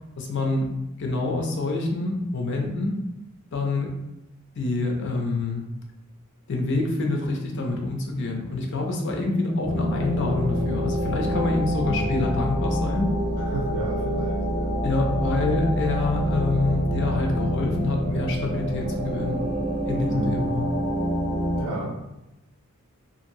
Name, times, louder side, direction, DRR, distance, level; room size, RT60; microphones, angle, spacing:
voice 1, 0.2-3.0 3.5-3.9 4.6-5.7 6.5-13.1 14.8-19.4 19.8-20.7, left 2 dB, 55° left, 1 dB, 0.5 m, -26 dB
sound 1, 9.6-21.6, equal, 65° right, 0.9 m, -27 dB
voice 2, 13.5-14.8 20.1-20.5 21.5-22.2, right 2 dB, 85° right, -4 dB, 0.5 m, -32 dB
2.8 x 2.6 x 2.7 m, 0.93 s
head